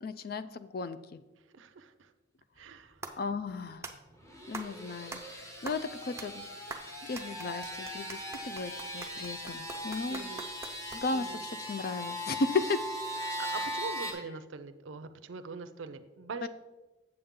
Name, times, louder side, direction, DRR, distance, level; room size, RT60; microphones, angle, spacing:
voice 1, 0.0-1.2 3.2-3.8 4.5-6.5 7.0-10.3 10.9-12.8 16.4-16.5, left 3 dB, 50° left, 13 dB, 0.4 m, -35 dB
voice 2, 1.5-2.1 2.6-3.0 10.1-10.5 11.1-11.4 13.2-16.5, right 4 dB, 80° right, 10 dB, 0.5 m, -43 dB
sound 1, 2.5-11.3, right 3 dB, 15° right, 0.5 m, -46 dB
sound 2, 4.2-14.1, equal, 15° left, 1.1 m, -39 dB
7.8 x 7.0 x 3.7 m, 1.1 s
head